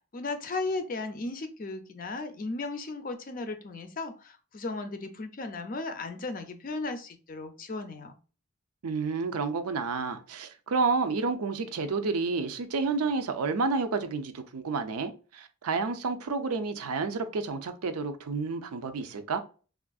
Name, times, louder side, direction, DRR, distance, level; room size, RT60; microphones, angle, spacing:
voice 1, 0.1-8.1, left 3 dB, 40° left, 0.4 m, -35 dB
voice 2, 8.8-19.4, right 4 dB, 90° right, 0.5 m, -30 dB
3.4 x 2.5 x 2.3 m
head